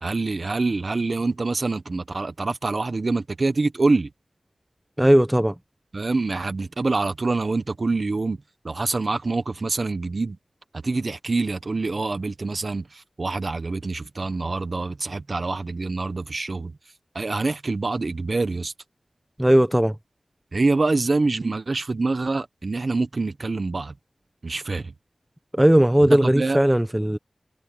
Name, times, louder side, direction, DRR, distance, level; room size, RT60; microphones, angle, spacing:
voice 1, 0.0-4.1 5.9-8.4 8.6-10.4 10.8-16.7 17.1-18.7 20.5-23.9 24.4-24.9 26.0-26.6, right 3 dB, 60° right, 1.2 m, -25 dB
voice 2, 5.0-5.5 19.4-19.9 25.5-27.2, right 1 dB, 10° right, 1.0 m, -17 dB
wide cardioid pair, 55°, 0 cm